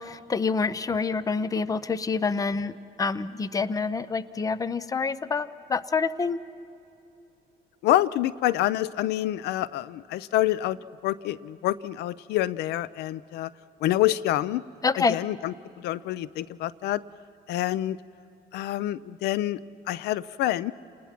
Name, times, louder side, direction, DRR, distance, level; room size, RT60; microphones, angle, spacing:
voice 1, 0.0-2.7 3.0-6.4 14.8-15.2, left 4 dB, 20° left, 16 dB, 0.6 m, -27 dB
voice 2, 7.8-10.8 11.0-13.5 13.8-14.6 15.0-17.0 17.5-18.0 18.5-19.6 19.9-20.7, left 14 dB, 80° left, 19 dB, 0.5 m, -27 dB
29.5 x 20.0 x 6.0 m, 2.7 s
cardioid pair, 110°, 17 cm